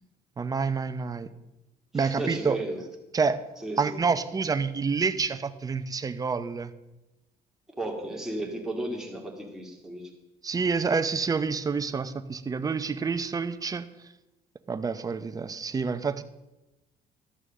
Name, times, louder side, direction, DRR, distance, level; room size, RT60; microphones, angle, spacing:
voice 1, 0.4-1.3 1.9-2.6 3.1-3.4 3.8-6.7 10.4-13.9 14.7-16.2, right 5 dB, 20° right, 11 dB, 0.6 m, -28 dB
voice 2, 1.9-2.8 3.6-4.0 7.8-10.0, right 1 dB, 5° right, -1 dB, 2.4 m, -34 dB
12.5 x 6.4 x 6.4 m, 1.0 s
cardioid pair, 110°, 17 cm